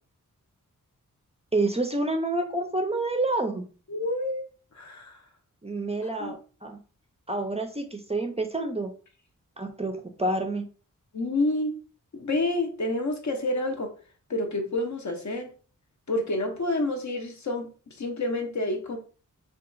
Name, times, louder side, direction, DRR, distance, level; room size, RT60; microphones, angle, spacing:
voice 1, 1.5-3.6 5.6-6.8 7.3-8.9 9.6-10.7, right 2 dB, 20° right, 4 dB, 0.4 m, -28 dB
voice 2, 3.9-4.4 4.7-5.2 6.2-6.4 11.1-11.8 12.1-13.9 14.3-15.5 16.1-17.7 18.0-19.0, left 2 dB, 55° left, 4 dB, 0.7 m, -28 dB
2.8 x 2.3 x 2.5 m, 0.38 s
wide cardioid pair, 65°, 34 cm